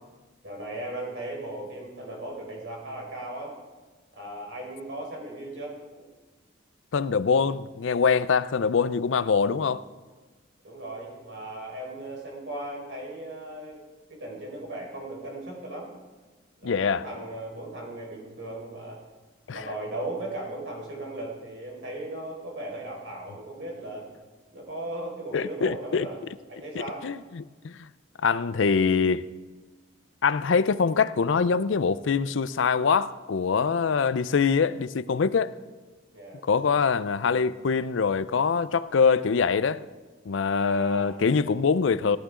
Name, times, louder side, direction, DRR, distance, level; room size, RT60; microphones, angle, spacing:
voice 1, 0.4-3.5 4.2-6.0 10.6-13.8 14.1-15.9 16.6-19.0 19.5-24.1 24.5-26.2 26.5-27.1 36.1-36.4 40.6-41.3, right 1 dB, 65° right, 4.8 m, -37 dB
voice 2, 6.9-9.8 16.6-17.1 19.5-19.6 25.3-26.1 27.0-27.9 28.2-29.3 30.2-35.5 36.4-39.8 40.3-42.2, left 5 dB, 75° left, 0.5 m, -24 dB
17.5 x 12.0 x 3.7 m
head